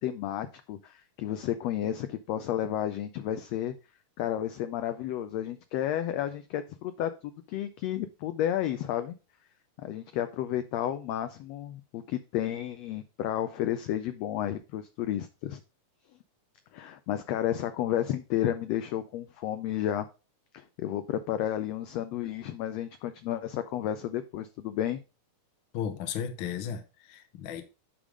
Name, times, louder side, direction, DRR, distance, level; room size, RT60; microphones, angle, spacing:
voice 1, 0.0-3.7 4.2-9.1 9.8-15.6 16.7-20.1 20.5-25.0, left 11 dB, 80° left, 1.5 m, -32 dB
voice 2, 25.7-27.6, left 8 dB, 65° left, 1.2 m, -35 dB
9.9 x 3.6 x 4.9 m
omnidirectional pair, 3.6 m